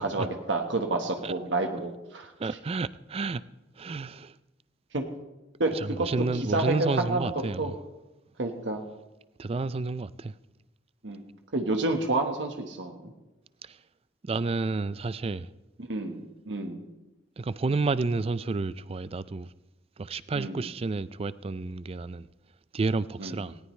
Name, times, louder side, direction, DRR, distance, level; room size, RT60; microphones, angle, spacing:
voice 1, 0.0-2.3 4.9-5.0 5.6-6.1 6.5-7.3 7.6-7.7 8.4-8.8 11.0-11.2 11.5-13.1 15.8-16.9 20.4-20.6 23.2-23.4, right 2 dB, 75° right, 1.5 m, -29 dB
voice 2, 2.4-3.4 3.8-4.4 5.7-7.8 9.4-10.3 13.6-13.8 14.2-15.5 17.4-19.5 20.0-22.3 22.7-23.6, right 3 dB, 30° right, 0.4 m, -30 dB
19.0 x 17.5 x 3.2 m
head